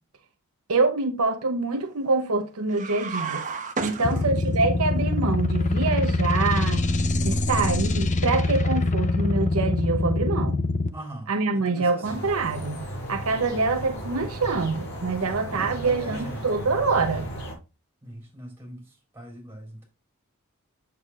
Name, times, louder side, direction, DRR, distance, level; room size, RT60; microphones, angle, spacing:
voice 1, 0.7-3.4 3.8-6.8 7.2-10.6 11.3-12.8 13.1-17.3, right 3 dB, 70° right, 0.8 m, -25 dB
sound 1, 2.7-4.7, right 4 dB, 35° right, 0.9 m, -32 dB
voice 2, 3.9-4.3 10.9-12.3 13.3-13.4 15.2-16.5 18.0-19.9, right 1 dB, 10° right, 3.7 m, -41 dB
sound 2, 4.0-10.9, left 2 dB, 35° left, 0.6 m, -24 dB
sound 3, 12.0-17.5, right 1 dB, 60° left, 5.0 m, -35 dB
8.2 x 7.0 x 2.4 m
head